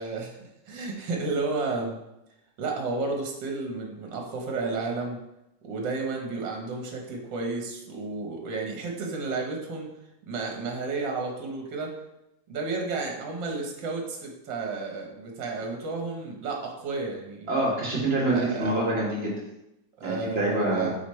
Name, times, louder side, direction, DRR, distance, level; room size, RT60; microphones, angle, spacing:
voice 1, 0.0-2.0 2.6-5.2 5.6-9.9 10.3-12.0 12.5-17.5 18.3-18.8 20.0-21.0, right 3 dB, 70° right, 1 dB, 1.8 m, -32 dB
voice 2, 17.5-19.3 20.0-20.9, right 2 dB, 30° right, -4 dB, 2.1 m, -26 dB
8.0 x 4.9 x 3.2 m, 0.88 s
omnidirectional pair, 2.1 m